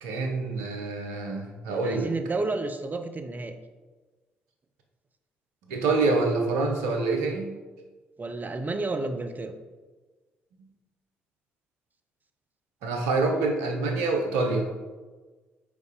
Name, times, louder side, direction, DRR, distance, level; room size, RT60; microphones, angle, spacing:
voice 1, 0.0-2.1 5.7-7.5 12.8-14.6, right 3 dB, 75° right, 3 dB, 0.9 m, -26 dB
voice 2, 1.7-3.6 8.2-9.5, right 3 dB, 30° right, 7 dB, 0.8 m, -31 dB
5.3 x 4.7 x 5.0 m, 1.3 s
hypercardioid pair, 45°, 6 cm